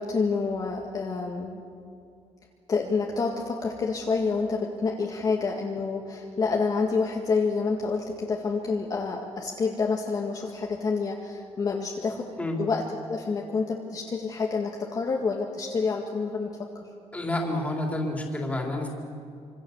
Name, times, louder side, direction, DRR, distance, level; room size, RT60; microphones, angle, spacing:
voice 1, 0.0-1.6 2.7-12.3 12.6-16.7, left 4 dB, 35° left, 0 dB, 2.0 m, -28 dB
voice 2, 17.1-18.9, left 1 dB, 10° left, 0 dB, 3.7 m, -29 dB
26.0 x 26.0 x 7.3 m, 2.4 s
cardioid pair, 170°, 12 cm